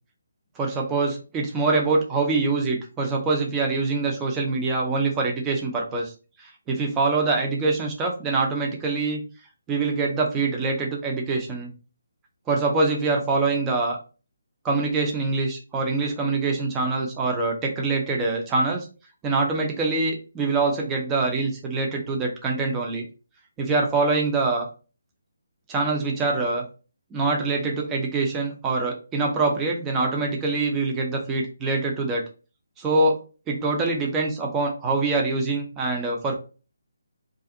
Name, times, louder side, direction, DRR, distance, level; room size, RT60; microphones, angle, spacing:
voice 1, 0.6-6.1 6.4-9.2 9.7-11.7 12.5-14.0 14.6-18.9 19.2-23.1 23.6-24.7 25.7-26.6 27.1-32.2 32.8-36.3, right 3 dB, 15° right, 0 dB, 0.5 m, -24 dB
2.5 x 2.4 x 2.4 m, 0.34 s
figure-of-eight pair, 145°, 0 cm